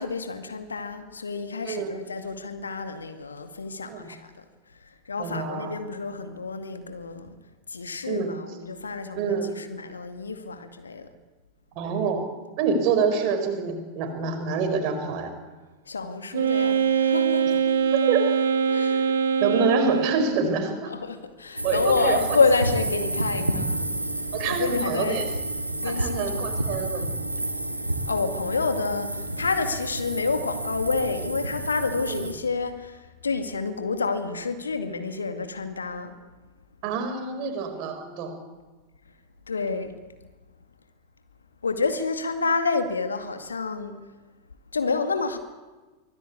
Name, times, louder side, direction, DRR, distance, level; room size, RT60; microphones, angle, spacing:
voice 1, 0.0-4.4 4.8-7.3 7.7-11.1 15.9-17.8 18.7-19.1 20.9-25.3 25.8-26.5 27.7-36.1 39.5-39.9 41.6-43.9 44.7-45.4, left 4 dB, 75° left, 8 dB, 2.1 m, -29 dB
voice 2, 5.2-5.7 8.1-8.3 9.2-9.5 11.7-15.3 18.1-18.2 19.4-20.9 21.6-22.4 24.3-25.2 25.8-27.1 32.0-32.3 36.8-38.4, right 5 dB, 40° right, 6 dB, 4.9 m, -26 dB
Wind instrument woodwind instrument, 16.3-20.4, right 6 dB, 65° right, 1.4 m, -23 dB
sound 1, 21.6-32.3, right 1 dB, 85° right, 2.3 m, -30 dB
24.5 x 17.0 x 8.6 m, 1.2 s
figure-of-eight pair, 90°, 0 cm